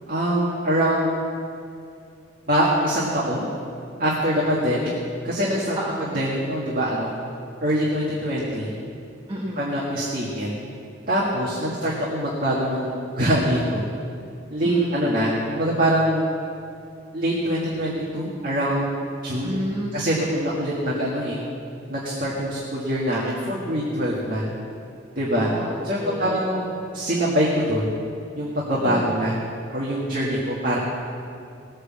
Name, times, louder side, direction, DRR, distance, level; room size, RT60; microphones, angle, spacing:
voice 1, 0.1-1.1 2.5-3.5 4.0-4.9 5.2-5.8 6.1-7.1 7.6-8.7 9.6-10.5 11.1-13.8 14.5-16.3 17.1-18.8 19.2-19.5 19.9-21.4 21.9-24.4 25.2-25.5 25.8-26.6 26.9-27.9 28.3-29.4 29.7-30.8, equal, 45° right, -5 dB, 1.8 m, -23 dB
voice 2, 5.8-6.2 9.3-9.7 11.7-11.8 14.6-15.0 19.4-20.0 25.4-26.7 28.9-29.2, equal, 25° right, -3 dB, 1.1 m, -32 dB
18.5 x 6.6 x 7.4 m, 2.5 s
head